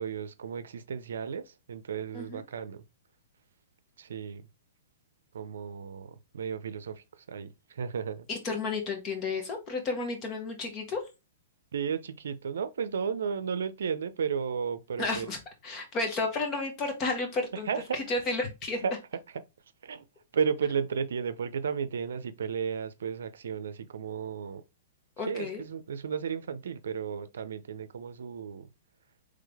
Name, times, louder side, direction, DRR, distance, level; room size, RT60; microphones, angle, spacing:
voice 1, 0.0-2.8 4.0-4.4 5.3-8.3 11.7-15.3 17.5-18.0 18.8-18.9 19.8-20.0 20.3-24.6 25.3-28.7, right 6 dB, 75° right, 0.5 m, -33 dB
voice 2, 8.3-11.0 15.0-15.4 15.6-17.7 17.9-18.8 25.2-25.6, left 3 dB, 30° left, 1.3 m, -32 dB
3.8 x 3.3 x 3.4 m
hypercardioid pair, 130°, 0 cm